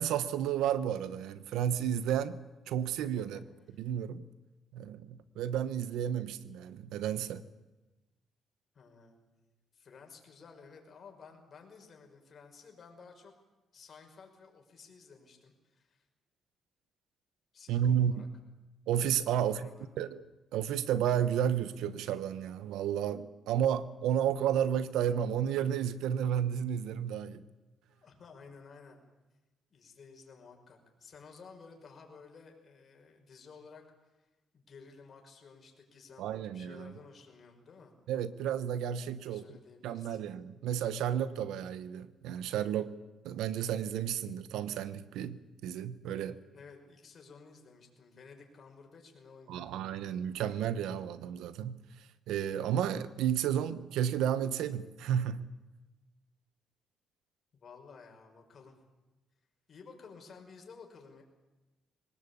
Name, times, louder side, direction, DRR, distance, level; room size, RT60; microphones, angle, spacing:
voice 1, 0.0-2.4 2.7-3.4 3.8-4.2 4.7-7.4 17.7-18.2 18.9-19.7 20.0-20.2 20.5-27.4 36.2-36.9 38.1-39.4 39.8-42.9 43.2-46.4 49.5-51.8 52.3-55.4, right 9 dB, 90° right, 15 dB, 1.1 m, -32 dB
voice 2, 8.7-9.2 9.7-13.3 13.7-16.0 17.5-18.3 19.4-19.9 27.9-29.0 29.7-33.8 34.2-34.3 34.5-37.9 39.2-40.2 46.5-49.8 57.5-58.8 59.7-61.2, left 5 dB, 50° left, 3 dB, 5.8 m, -54 dB
23.5 x 19.0 x 8.6 m, 1.1 s
cardioid pair, 90°, 0 cm